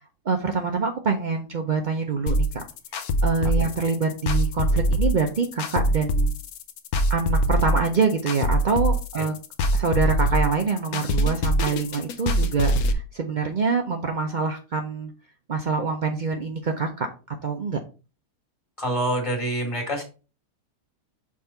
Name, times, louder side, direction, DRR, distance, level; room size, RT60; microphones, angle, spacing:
voice 1, 0.2-2.6 3.2-6.3 7.1-9.3 9.7-15.1 15.5-17.8, right 4 dB, 75° right, 3 dB, 0.4 m, -25 dB
sound 1, 2.3-12.9, equal, 70° left, 1.1 m, -23 dB
voice 2, 18.8-20.0, right 1 dB, 20° left, 0 dB, 2.0 m, -26 dB
6.1 x 3.7 x 4.3 m, 0.33 s
omnidirectional pair, 1.8 m